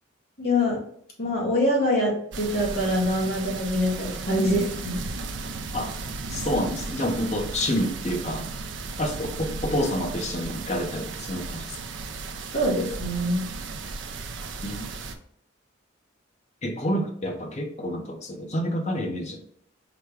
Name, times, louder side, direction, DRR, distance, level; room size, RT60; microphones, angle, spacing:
voice 1, 0.4-0.8 1.2-5.0 12.5-13.4, left 1 dB, 50° left, -2 dB, 1.7 m, -24 dB
sound 1, 2.3-15.2, right 3 dB, 65° right, 0.5 m, -35 dB
voice 2, 6.3-8.5 9.0-11.8 14.6-14.9 16.6-19.5, equal, 35° left, 3 dB, 0.7 m, -28 dB
5.0 x 2.2 x 4.6 m, 0.65 s
head